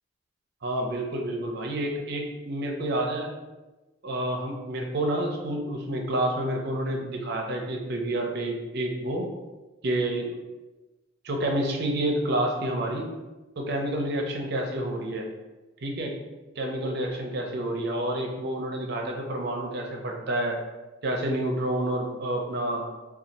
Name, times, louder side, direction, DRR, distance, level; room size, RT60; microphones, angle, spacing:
voice 1, 0.6-3.3 4.0-9.3 9.8-10.4 11.2-13.1 13.6-15.3 15.8-16.1 16.6-20.6 21.0-22.9, right 1 dB, 55° right, 1 dB, 0.5 m, -29 dB
2.7 x 2.3 x 4.0 m, 1.1 s
head